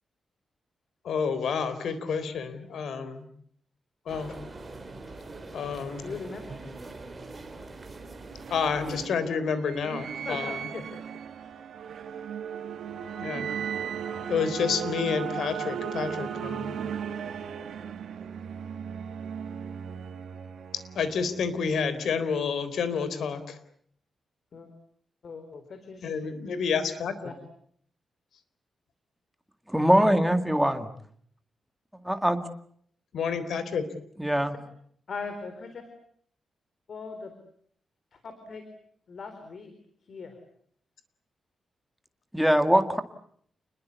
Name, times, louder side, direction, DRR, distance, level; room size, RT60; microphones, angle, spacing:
voice 1, 1.0-3.2 4.1-4.4 5.5-6.1 8.5-10.6 13.2-13.5 14.3-16.8 21.0-23.6 26.0-27.1 33.1-33.8, left 6 dB, 80° left, 12 dB, 3.9 m, -29 dB
sound 1, 4.1-9.1, right 3 dB, 25° right, 4.4 m, -43 dB
voice 2, 6.0-6.4 10.2-11.5 24.5-24.7 25.2-26.2 27.2-27.3 35.1-35.8 36.9-37.3 38.1-38.6 39.1-39.7 40.1-40.4, left 4 dB, 50° left, 7 dB, 4.1 m, -40 dB
sound 2, 7.8-21.5, right 7 dB, 80° right, 1.9 m, -36 dB
voice 3, 29.7-30.9 32.0-32.4 34.2-34.6 42.3-43.0, equal, 5° right, 8 dB, 2.0 m, -22 dB
29.5 x 21.0 x 8.3 m, 0.65 s
wide cardioid pair, 135°, 0 cm